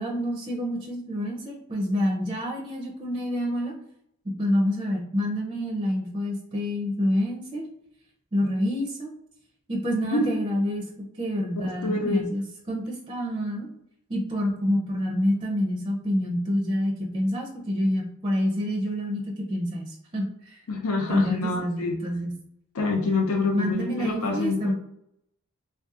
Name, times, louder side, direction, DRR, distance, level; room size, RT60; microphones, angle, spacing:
voice 1, 0.0-3.7 4.4-7.6 8.3-9.1 9.7-10.8 11.2-13.7 14.1-20.6 21.1-22.3 23.5-24.7, equal, 25° right, -1 dB, 0.4 m, -27 dB
voice 2, 10.0-10.4 11.8-12.2 20.7-21.9 22.7-24.7, left 3 dB, 85° left, 0 dB, 0.6 m, -26 dB
3.4 x 2.7 x 2.3 m, 0.75 s
head